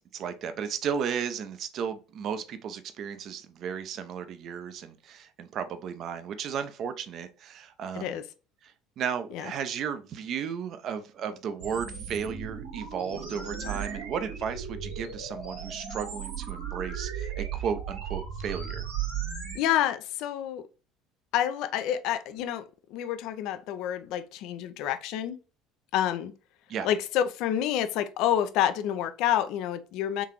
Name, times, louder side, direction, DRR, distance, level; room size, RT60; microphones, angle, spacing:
voice 1, 0.1-8.2 8.6-18.8 26.7-26.9, right 7 dB, 50° right, 0.5 m, -34 dB
sound 1, 11.6-19.6, right 8 dB, 80° right, 1.7 m, -36 dB
voice 2, 19.5-20.6 21.3-22.6 22.9-25.4 25.9-26.3 26.8-30.3, left 10 dB, 55° left, 0.4 m, -28 dB
3.7 x 3.6 x 3.0 m
figure-of-eight pair, 60°, 0 cm